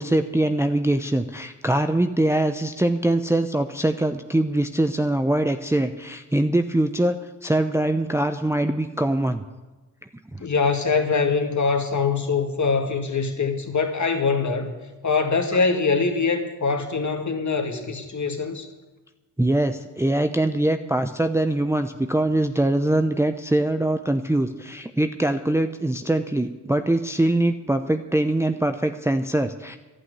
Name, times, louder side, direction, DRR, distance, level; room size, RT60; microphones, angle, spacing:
voice 1, 0.0-7.2 7.4-9.4 10.3-10.4 19.4-29.8, right 1 dB, 5° right, 7 dB, 0.8 m, -23 dB
voice 2, 10.4-14.7 15.0-18.7, left 4 dB, 35° left, 5 dB, 2.2 m, -23 dB
11.5 x 8.6 x 9.7 m, 1.2 s
hypercardioid pair, 45°, 46 cm